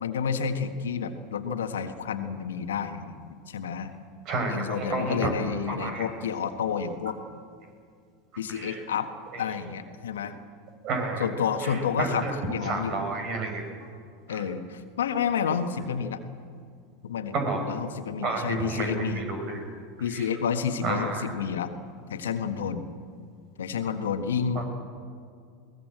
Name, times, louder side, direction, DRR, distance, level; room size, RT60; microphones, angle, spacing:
voice 1, 0.0-3.9 4.5-7.2 8.4-9.1 9.4-10.4 11.2-13.0 14.3-16.2 17.0-17.3 17.7-19.2 20.0-21.7 22.1-22.9 23.6-24.6, left 7 dB, 80° left, 8 dB, 1.5 m, -30 dB
voice 2, 4.2-5.3 5.7-6.0 8.5-8.8 9.3-9.4 10.8-12.3 12.6-13.9 14.3-14.4 17.3-17.7 18.2-19.6 20.1-20.3 20.8-21.3 24.5-24.6, right 3 dB, 50° right, 4 dB, 6.3 m, -31 dB
22.0 x 18.5 x 7.7 m, 2.2 s
hypercardioid pair, 85°, 0 cm